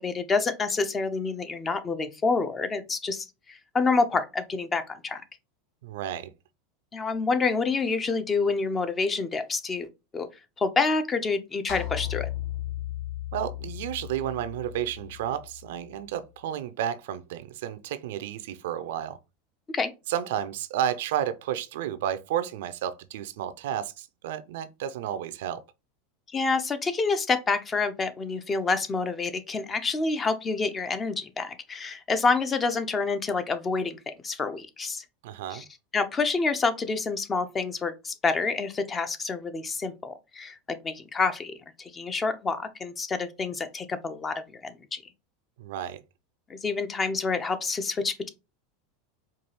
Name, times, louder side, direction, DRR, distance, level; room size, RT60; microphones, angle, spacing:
voice 1, 0.0-5.2 6.9-9.9 10.1-10.3 10.6-12.3 19.7-19.9 26.3-35.0 35.5-35.6 35.9-45.0 46.5-48.3, left 4 dB, 25° left, 0.5 m, -28 dB
voice 2, 5.8-6.3 13.3-19.2 20.1-25.6 35.2-35.6 45.6-46.0, right 10 dB, 70° right, 0.4 m, -32 dB
sound 1, 11.7-16.1, left 14 dB, 60° left, 1.0 m, -36 dB
4.6 x 2.4 x 2.9 m
hypercardioid pair, 95°, 0 cm